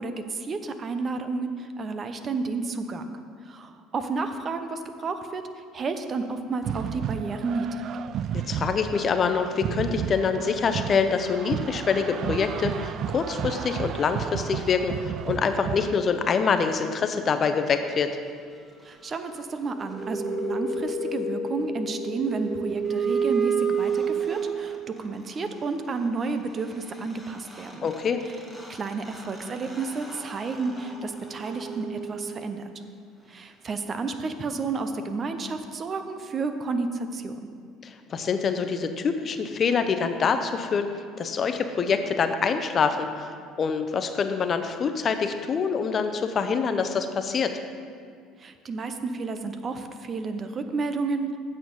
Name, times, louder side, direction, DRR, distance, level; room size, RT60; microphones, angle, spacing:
voice 1, 0.0-3.0 3.4-7.8 18.8-27.9 28.7-32.7 33.3-37.4 48.4-51.4, right 4 dB, 40° right, 8 dB, 0.8 m, -31 dB
sound 1, 6.6-16.0, right 9 dB, 55° right, 0.3 m, -32 dB
voice 2, 8.3-18.2 27.8-28.2 37.8-43.3 43.6-47.5, left 5 dB, 45° left, 8 dB, 0.7 m, -25 dB
sound 2, 19.6-25.0 26.9-27.0 27.2-32.7, right 5 dB, 15° right, 1.9 m, -30 dB
8.6 x 6.7 x 5.4 m, 2.1 s
hypercardioid pair, 70°, 0 cm